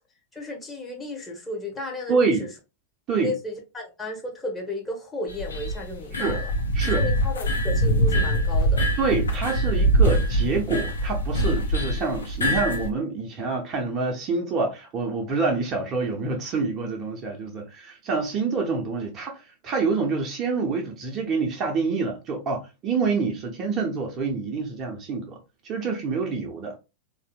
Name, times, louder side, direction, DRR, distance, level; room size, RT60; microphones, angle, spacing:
voice 1, 0.3-2.5 3.2-6.5 6.9-8.9, left 2 dB, 15° left, 1.1 m, -34 dB
voice 2, 2.1-2.5 3.1-3.3 6.1-6.4 6.7-7.1 9.0-25.4 25.6-26.8, right 4 dB, 30° right, 0.7 m, -27 dB
sound 1, 5.3-12.9, right 1 dB, 70° left, 0.6 m, -23 dB
3.4 x 2.7 x 2.3 m
figure-of-eight pair, 90°, 0 cm